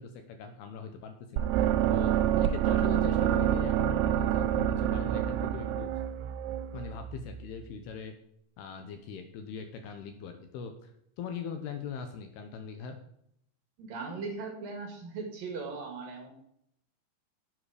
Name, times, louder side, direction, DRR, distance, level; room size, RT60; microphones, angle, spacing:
voice 1, 0.0-1.5 1.9-5.9 6.7-8.1 8.6-10.9 11.2-13.0, left 6 dB, 75° left, 6 dB, 2.6 m, -41 dB
sound 1, 1.4-7.4, right 11 dB, 90° right, 3.0 m, -27 dB
voice 2, 13.8-16.3, right 4 dB, 55° right, 2 dB, 3.4 m, -38 dB
11.5 x 7.6 x 4.9 m, 0.73 s
omnidirectional pair, 5.2 m